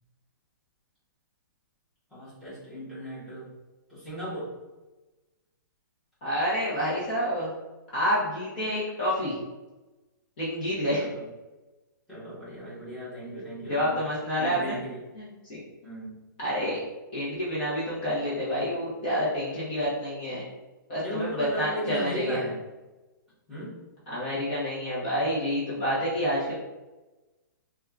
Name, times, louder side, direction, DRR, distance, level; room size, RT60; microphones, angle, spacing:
voice 1, 2.1-3.5 3.9-4.5 10.9-11.3 12.1-14.0 14.4-15.0 15.8-16.2 21.0-22.6 23.5-23.8, equal, ahead, -13 dB, 1.1 m, -36 dB
voice 2, 6.2-7.5 7.9-9.4 10.4-11.1 13.7-14.8 15.1-15.6 16.4-16.8 17.1-20.4 20.9-22.4 24.1-26.5, equal, 30° left, -8 dB, 0.9 m, -28 dB
4.5 x 2.3 x 2.4 m, 1.1 s
hypercardioid pair, 175°, 11 cm